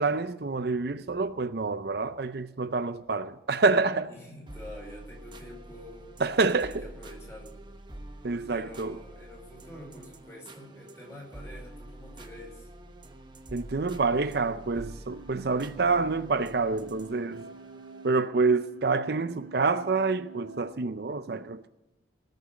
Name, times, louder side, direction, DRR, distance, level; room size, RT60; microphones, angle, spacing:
voice 1, 0.0-4.1 6.2-6.9 8.2-9.0 13.5-17.5 18.0-21.7, right 4 dB, 55° right, 0.5 m, -27 dB
voice 2, 3.9-6.2 6.5-7.6 8.5-12.7, left 1 dB, 15° left, 5.0 m, -47 dB
sound 1, 4.5-18.3, right 1 dB, 25° right, 1.1 m, -47 dB
sound 2, 15.1-20.7, right 4 dB, 75° right, 1.5 m, -48 dB
19.0 x 6.8 x 9.5 m
head